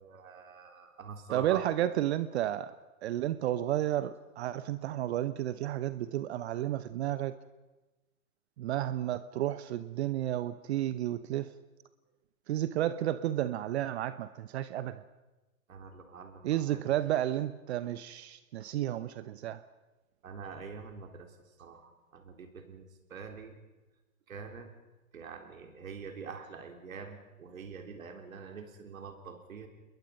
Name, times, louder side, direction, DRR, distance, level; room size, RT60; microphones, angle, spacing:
voice 1, 0.0-1.6 15.7-16.8 20.2-21.3 21.6-23.6 24.3-24.7 25.1-29.7, right 6 dB, 75° right, 5 dB, 4.0 m, -45 dB
voice 2, 1.3-2.7 3.0-7.3 8.6-11.5 12.5-15.0 16.4-19.6, right 13 dB, 50° right, 14 dB, 0.9 m, -32 dB
28.5 x 21.5 x 5.4 m, 1.1 s
hypercardioid pair, 120°, 41 cm